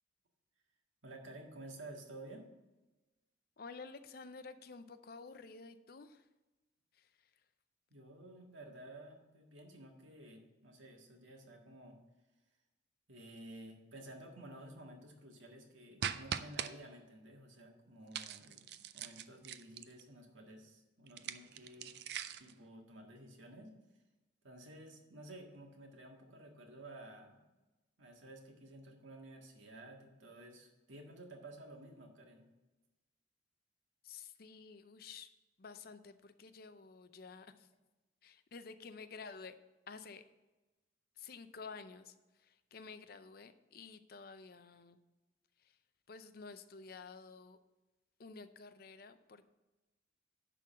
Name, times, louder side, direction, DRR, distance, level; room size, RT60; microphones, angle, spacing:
voice 1, 1.0-2.5 7.9-12.0 13.1-18.7 18.9-21.9 22.4-23.7 24.4-27.4 28.0-32.4, right 1 dB, 90° right, 1 dB, 1.8 m, -53 dB
voice 2, 3.6-6.3 6.9-7.3 34.0-35.3 35.6-37.7 38.2-39.5 39.9-40.2 41.2-45.0 45.6-45.8 46.1-47.6 48.2-49.5, left 4 dB, 50° left, 11 dB, 0.5 m, -51 dB
sound 1, 16.0-16.7 18.1-20.0 21.1-22.5, right 8 dB, 60° right, 0.4 m, -41 dB
11.0 x 3.9 x 7.4 m, 1.1 s
head